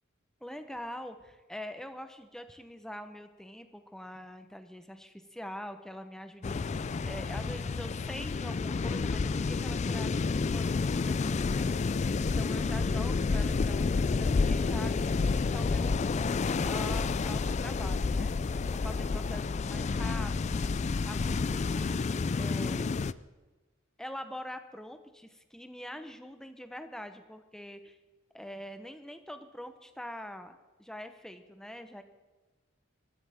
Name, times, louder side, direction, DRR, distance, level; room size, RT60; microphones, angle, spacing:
voice 1, 0.4-11.7 12.2-16.1 16.6-18.3 18.8-20.6 21.0-22.9 24.0-28.0 28.3-32.0, equal, 5° left, 8 dB, 0.9 m, -44 dB
sound 1, 6.4-23.1, left 4 dB, 35° left, 0.3 m, -30 dB
20.5 x 14.5 x 3.6 m, 1.2 s
head